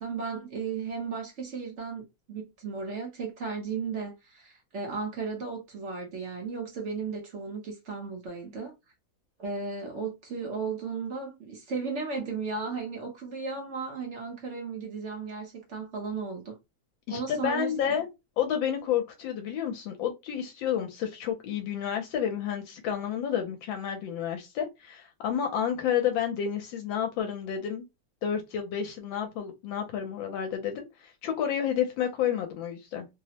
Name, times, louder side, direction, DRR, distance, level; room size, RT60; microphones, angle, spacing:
voice 1, 0.0-2.0 2.3-8.7 9.4-16.6 17.1-18.0, right 5 dB, 60° right, 0.7 m, -35 dB
voice 2, 17.1-18.1 18.4-27.8 28.2-33.1, left 9 dB, 80° left, 1.3 m, -30 dB
3.2 x 2.0 x 2.7 m
omnidirectional pair, 2.1 m